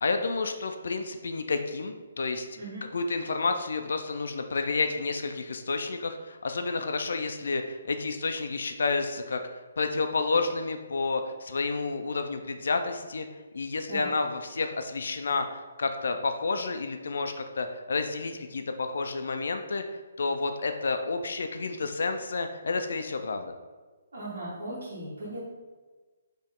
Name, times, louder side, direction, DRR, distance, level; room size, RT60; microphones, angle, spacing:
voice 1, 0.0-2.5 2.9-9.4 9.8-13.3 13.5-19.8 20.2-23.5, left 4 dB, 65° left, 6 dB, 0.4 m, -30 dB
voice 2, 2.5-2.9 13.9-14.1 24.1-25.4, right 1 dB, 80° right, -10 dB, 1.5 m, -37 dB
4.4 x 3.0 x 3.7 m, 1.3 s
hypercardioid pair, 180°, 0 cm